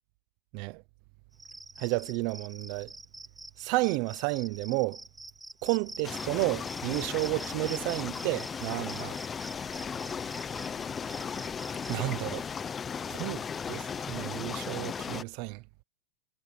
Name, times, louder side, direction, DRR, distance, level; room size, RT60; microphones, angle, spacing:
Cricket, 1.3-12.0, right 2 dB, 5° right, 2.3 m, -46 dB
voice 1, 1.8-2.9 3.6-5.0 5.6-9.2 11.9-12.4 13.1-15.6, right 24 dB, 40° right, 0.7 m, -31 dB
sound 1, 6.0-15.2, left 6 dB, 15° left, 0.9 m, -36 dB
supercardioid pair, 165°, 0 cm